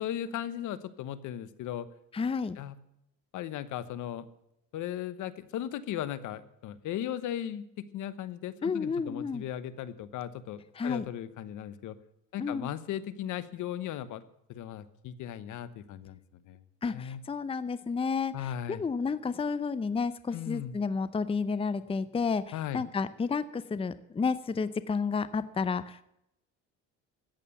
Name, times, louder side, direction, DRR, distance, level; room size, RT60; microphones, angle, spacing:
voice 1, 0.0-1.9 2.6-2.8 3.3-4.3 4.7-7.6 7.9-12.0 12.3-14.2 14.5-16.2 16.5-16.6 16.9-17.2 18.3-18.8 20.3-20.8 22.5-22.8, left 11 dB, 70° left, 15 dB, 1.2 m, -37 dB
voice 2, 2.1-2.6 8.6-9.4 10.8-11.0 12.4-12.7 16.8-26.0, left 5 dB, 15° left, 14 dB, 0.7 m, -31 dB
14.5 x 9.2 x 7.1 m, 0.79 s
cardioid pair, 105°, 32 cm